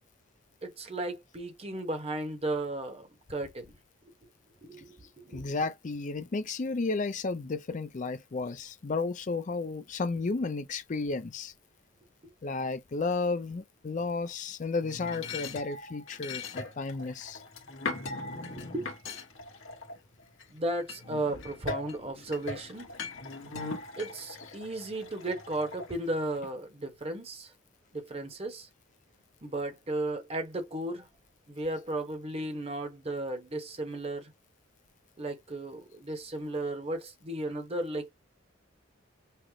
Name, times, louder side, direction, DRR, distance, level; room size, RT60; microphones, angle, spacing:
voice 1, 0.6-3.7 4.6-5.4 18.4-18.9 20.5-22.9 24.0-27.5 27.9-28.7 29.4-31.1 31.5-34.3 35.2-38.1, right 2 dB, 30° right, 1.0 m, -35 dB
voice 2, 5.3-11.5 12.4-17.4, left 3 dB, 40° left, 0.4 m, -33 dB
sound 1, 14.8-20.4 20.9-26.4, left 3 dB, 70° left, 1.3 m, -40 dB
5.8 x 2.0 x 3.1 m
head